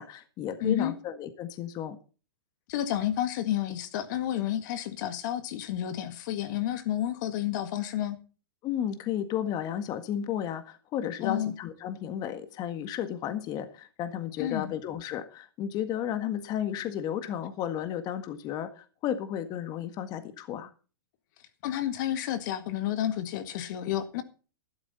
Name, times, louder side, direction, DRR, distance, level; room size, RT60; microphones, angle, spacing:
voice 1, 0.0-2.0 8.6-20.7, left 10 dB, 30° left, 1.8 m, -33 dB
voice 2, 0.6-0.9 2.7-8.2 11.2-11.5 14.4-14.7 21.6-24.2, left 11 dB, 50° left, 1.8 m, -30 dB
13.0 x 12.0 x 4.2 m
hypercardioid pair, 135°, 13 cm